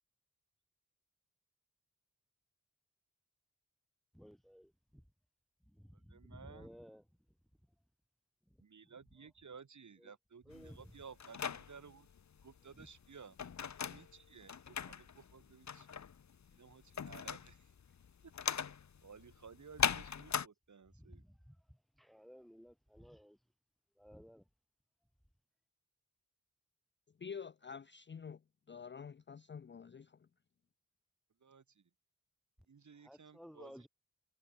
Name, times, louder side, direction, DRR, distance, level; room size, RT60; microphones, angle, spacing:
voice 1, 4.1-5.1 5.7-7.0 8.5-8.6 8.8-9.0 10.0-10.1 10.5-11.0 12.7-12.9 20.9-23.4 24.0-24.4 33.0-33.9, equal, ahead, 4.0 m, -56 dB
voice 2, 5.9-6.7 8.6-12.1 12.4-15.9 16.5-17.7 18.2-18.6 19.0-21.2 31.4-31.8 32.7-33.9, right 6 dB, 60° right, 1.6 m, -56 dB
sound 1, 10.5-20.5, left 7 dB, 55° left, 0.9 m, -40 dB
voice 3, 27.2-28.4 28.7-30.3, left 6 dB, 35° left, 0.5 m, -48 dB
wide cardioid pair, 75°, 33 cm